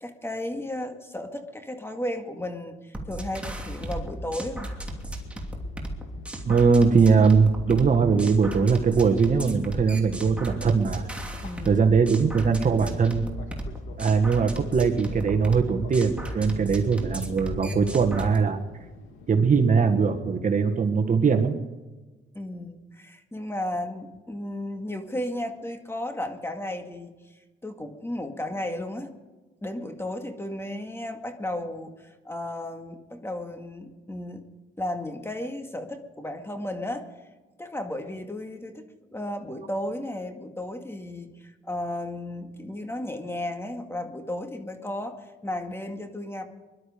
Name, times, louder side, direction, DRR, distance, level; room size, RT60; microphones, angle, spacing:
voice 1, 0.0-4.7 11.4-11.8 22.3-27.1 27.6-29.1 29.6-34.4 34.8-37.1 37.6-45.2 45.4-46.4, left 1 dB, 10° left, 5 dB, 2.1 m, -34 dB
sound 1, 2.9-18.4, right 1 dB, 5° right, 2.8 m, -35 dB
Fixed-wing aircraft airplane, 4.8-20.2, left 5 dB, 85° left, 2.4 m, -49 dB
voice 2, 6.5-11.1 11.7-13.3 14.0-18.6 19.3-21.6, right 5 dB, 40° right, 6 dB, 1.7 m, -21 dB
23.0 x 12.0 x 5.2 m, 1.2 s
cardioid pair, 90°, 20 cm